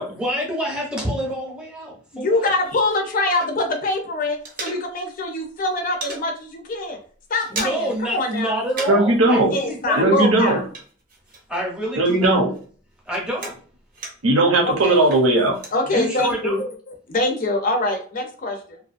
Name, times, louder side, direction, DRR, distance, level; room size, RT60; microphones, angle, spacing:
voice 1, 0.1-2.5 7.5-10.1 11.5-12.4 13.1-13.5 15.9-16.7, right 1 dB, 5° right, -3 dB, 0.8 m, -27 dB
voice 2, 2.1-7.0 7.3-8.6 9.5-10.6 14.6-15.0 15.7-16.6 17.1-18.8, left 2 dB, 40° left, 3 dB, 0.5 m, -24 dB
sound 1, 2.4-3.9 4.1-5.2 5.5-6.3 6.7-6.9 7.1-8.0 8.3-9.1 9.4-11.7 12.1-14.4 14.9-15.8, right 3 dB, 40° right, 0.7 m, -37 dB
voice 3, 8.9-9.5 9.9-10.6 12.0-12.5 14.2-15.6, right 2 dB, 75° right, 0 dB, 0.7 m, -17 dB
2.6 x 2.3 x 2.5 m, 0.43 s
head